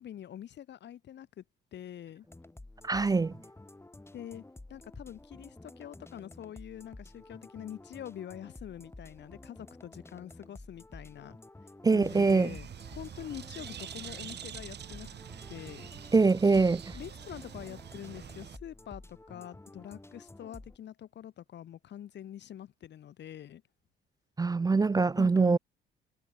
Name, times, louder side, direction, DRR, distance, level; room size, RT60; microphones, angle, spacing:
voice 1, 0.0-1.4 1.7-2.3 4.1-4.4 4.7-11.4 11.9-15.2 15.5-15.9 16.5-16.6 16.9-23.6 25.2-25.6, left 10 dB, 60° left, 1.2 m, -45 dB
sound 1, 2.3-20.8, left 2 dB, 10° left, 3.5 m, -51 dB
voice 2, 2.8-3.3 11.8-12.5 16.1-16.8 24.4-25.6, right 4 dB, 20° right, 0.4 m, -23 dB
Bird, 12.0-18.6, right 9 dB, 60° right, 2.9 m, -45 dB
cardioid pair, 90°, 20 cm